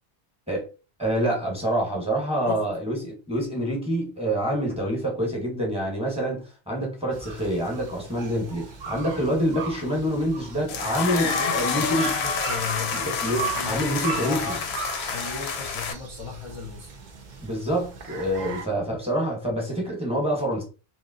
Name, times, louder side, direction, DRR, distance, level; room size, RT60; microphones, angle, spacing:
voice 1, 1.0-12.1 13.1-14.6 17.4-20.6, equal, 5° right, 1.0 m, -26 dB
sound 1, 7.1-18.7, right 5 dB, 50° right, 0.7 m, -37 dB
sound 2, 10.7-15.9, left 5 dB, 90° left, 0.9 m, -28 dB
voice 2, 11.1-14.6 15.1-16.9, left 4 dB, 35° left, 0.6 m, -36 dB
3.1 x 2.9 x 2.7 m
omnidirectional pair, 1.1 m